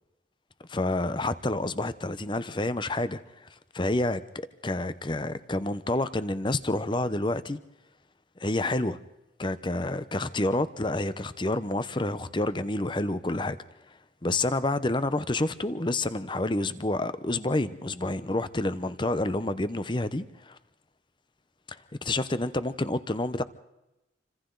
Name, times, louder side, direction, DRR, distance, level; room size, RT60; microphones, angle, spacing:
voice 1, 0.7-3.5 3.7-7.6 8.4-9.0 9.4-13.6 14.2-20.6 21.7-23.4, left 2 dB, 25° left, 0.8 m, -29 dB
29.0 x 25.5 x 4.0 m
head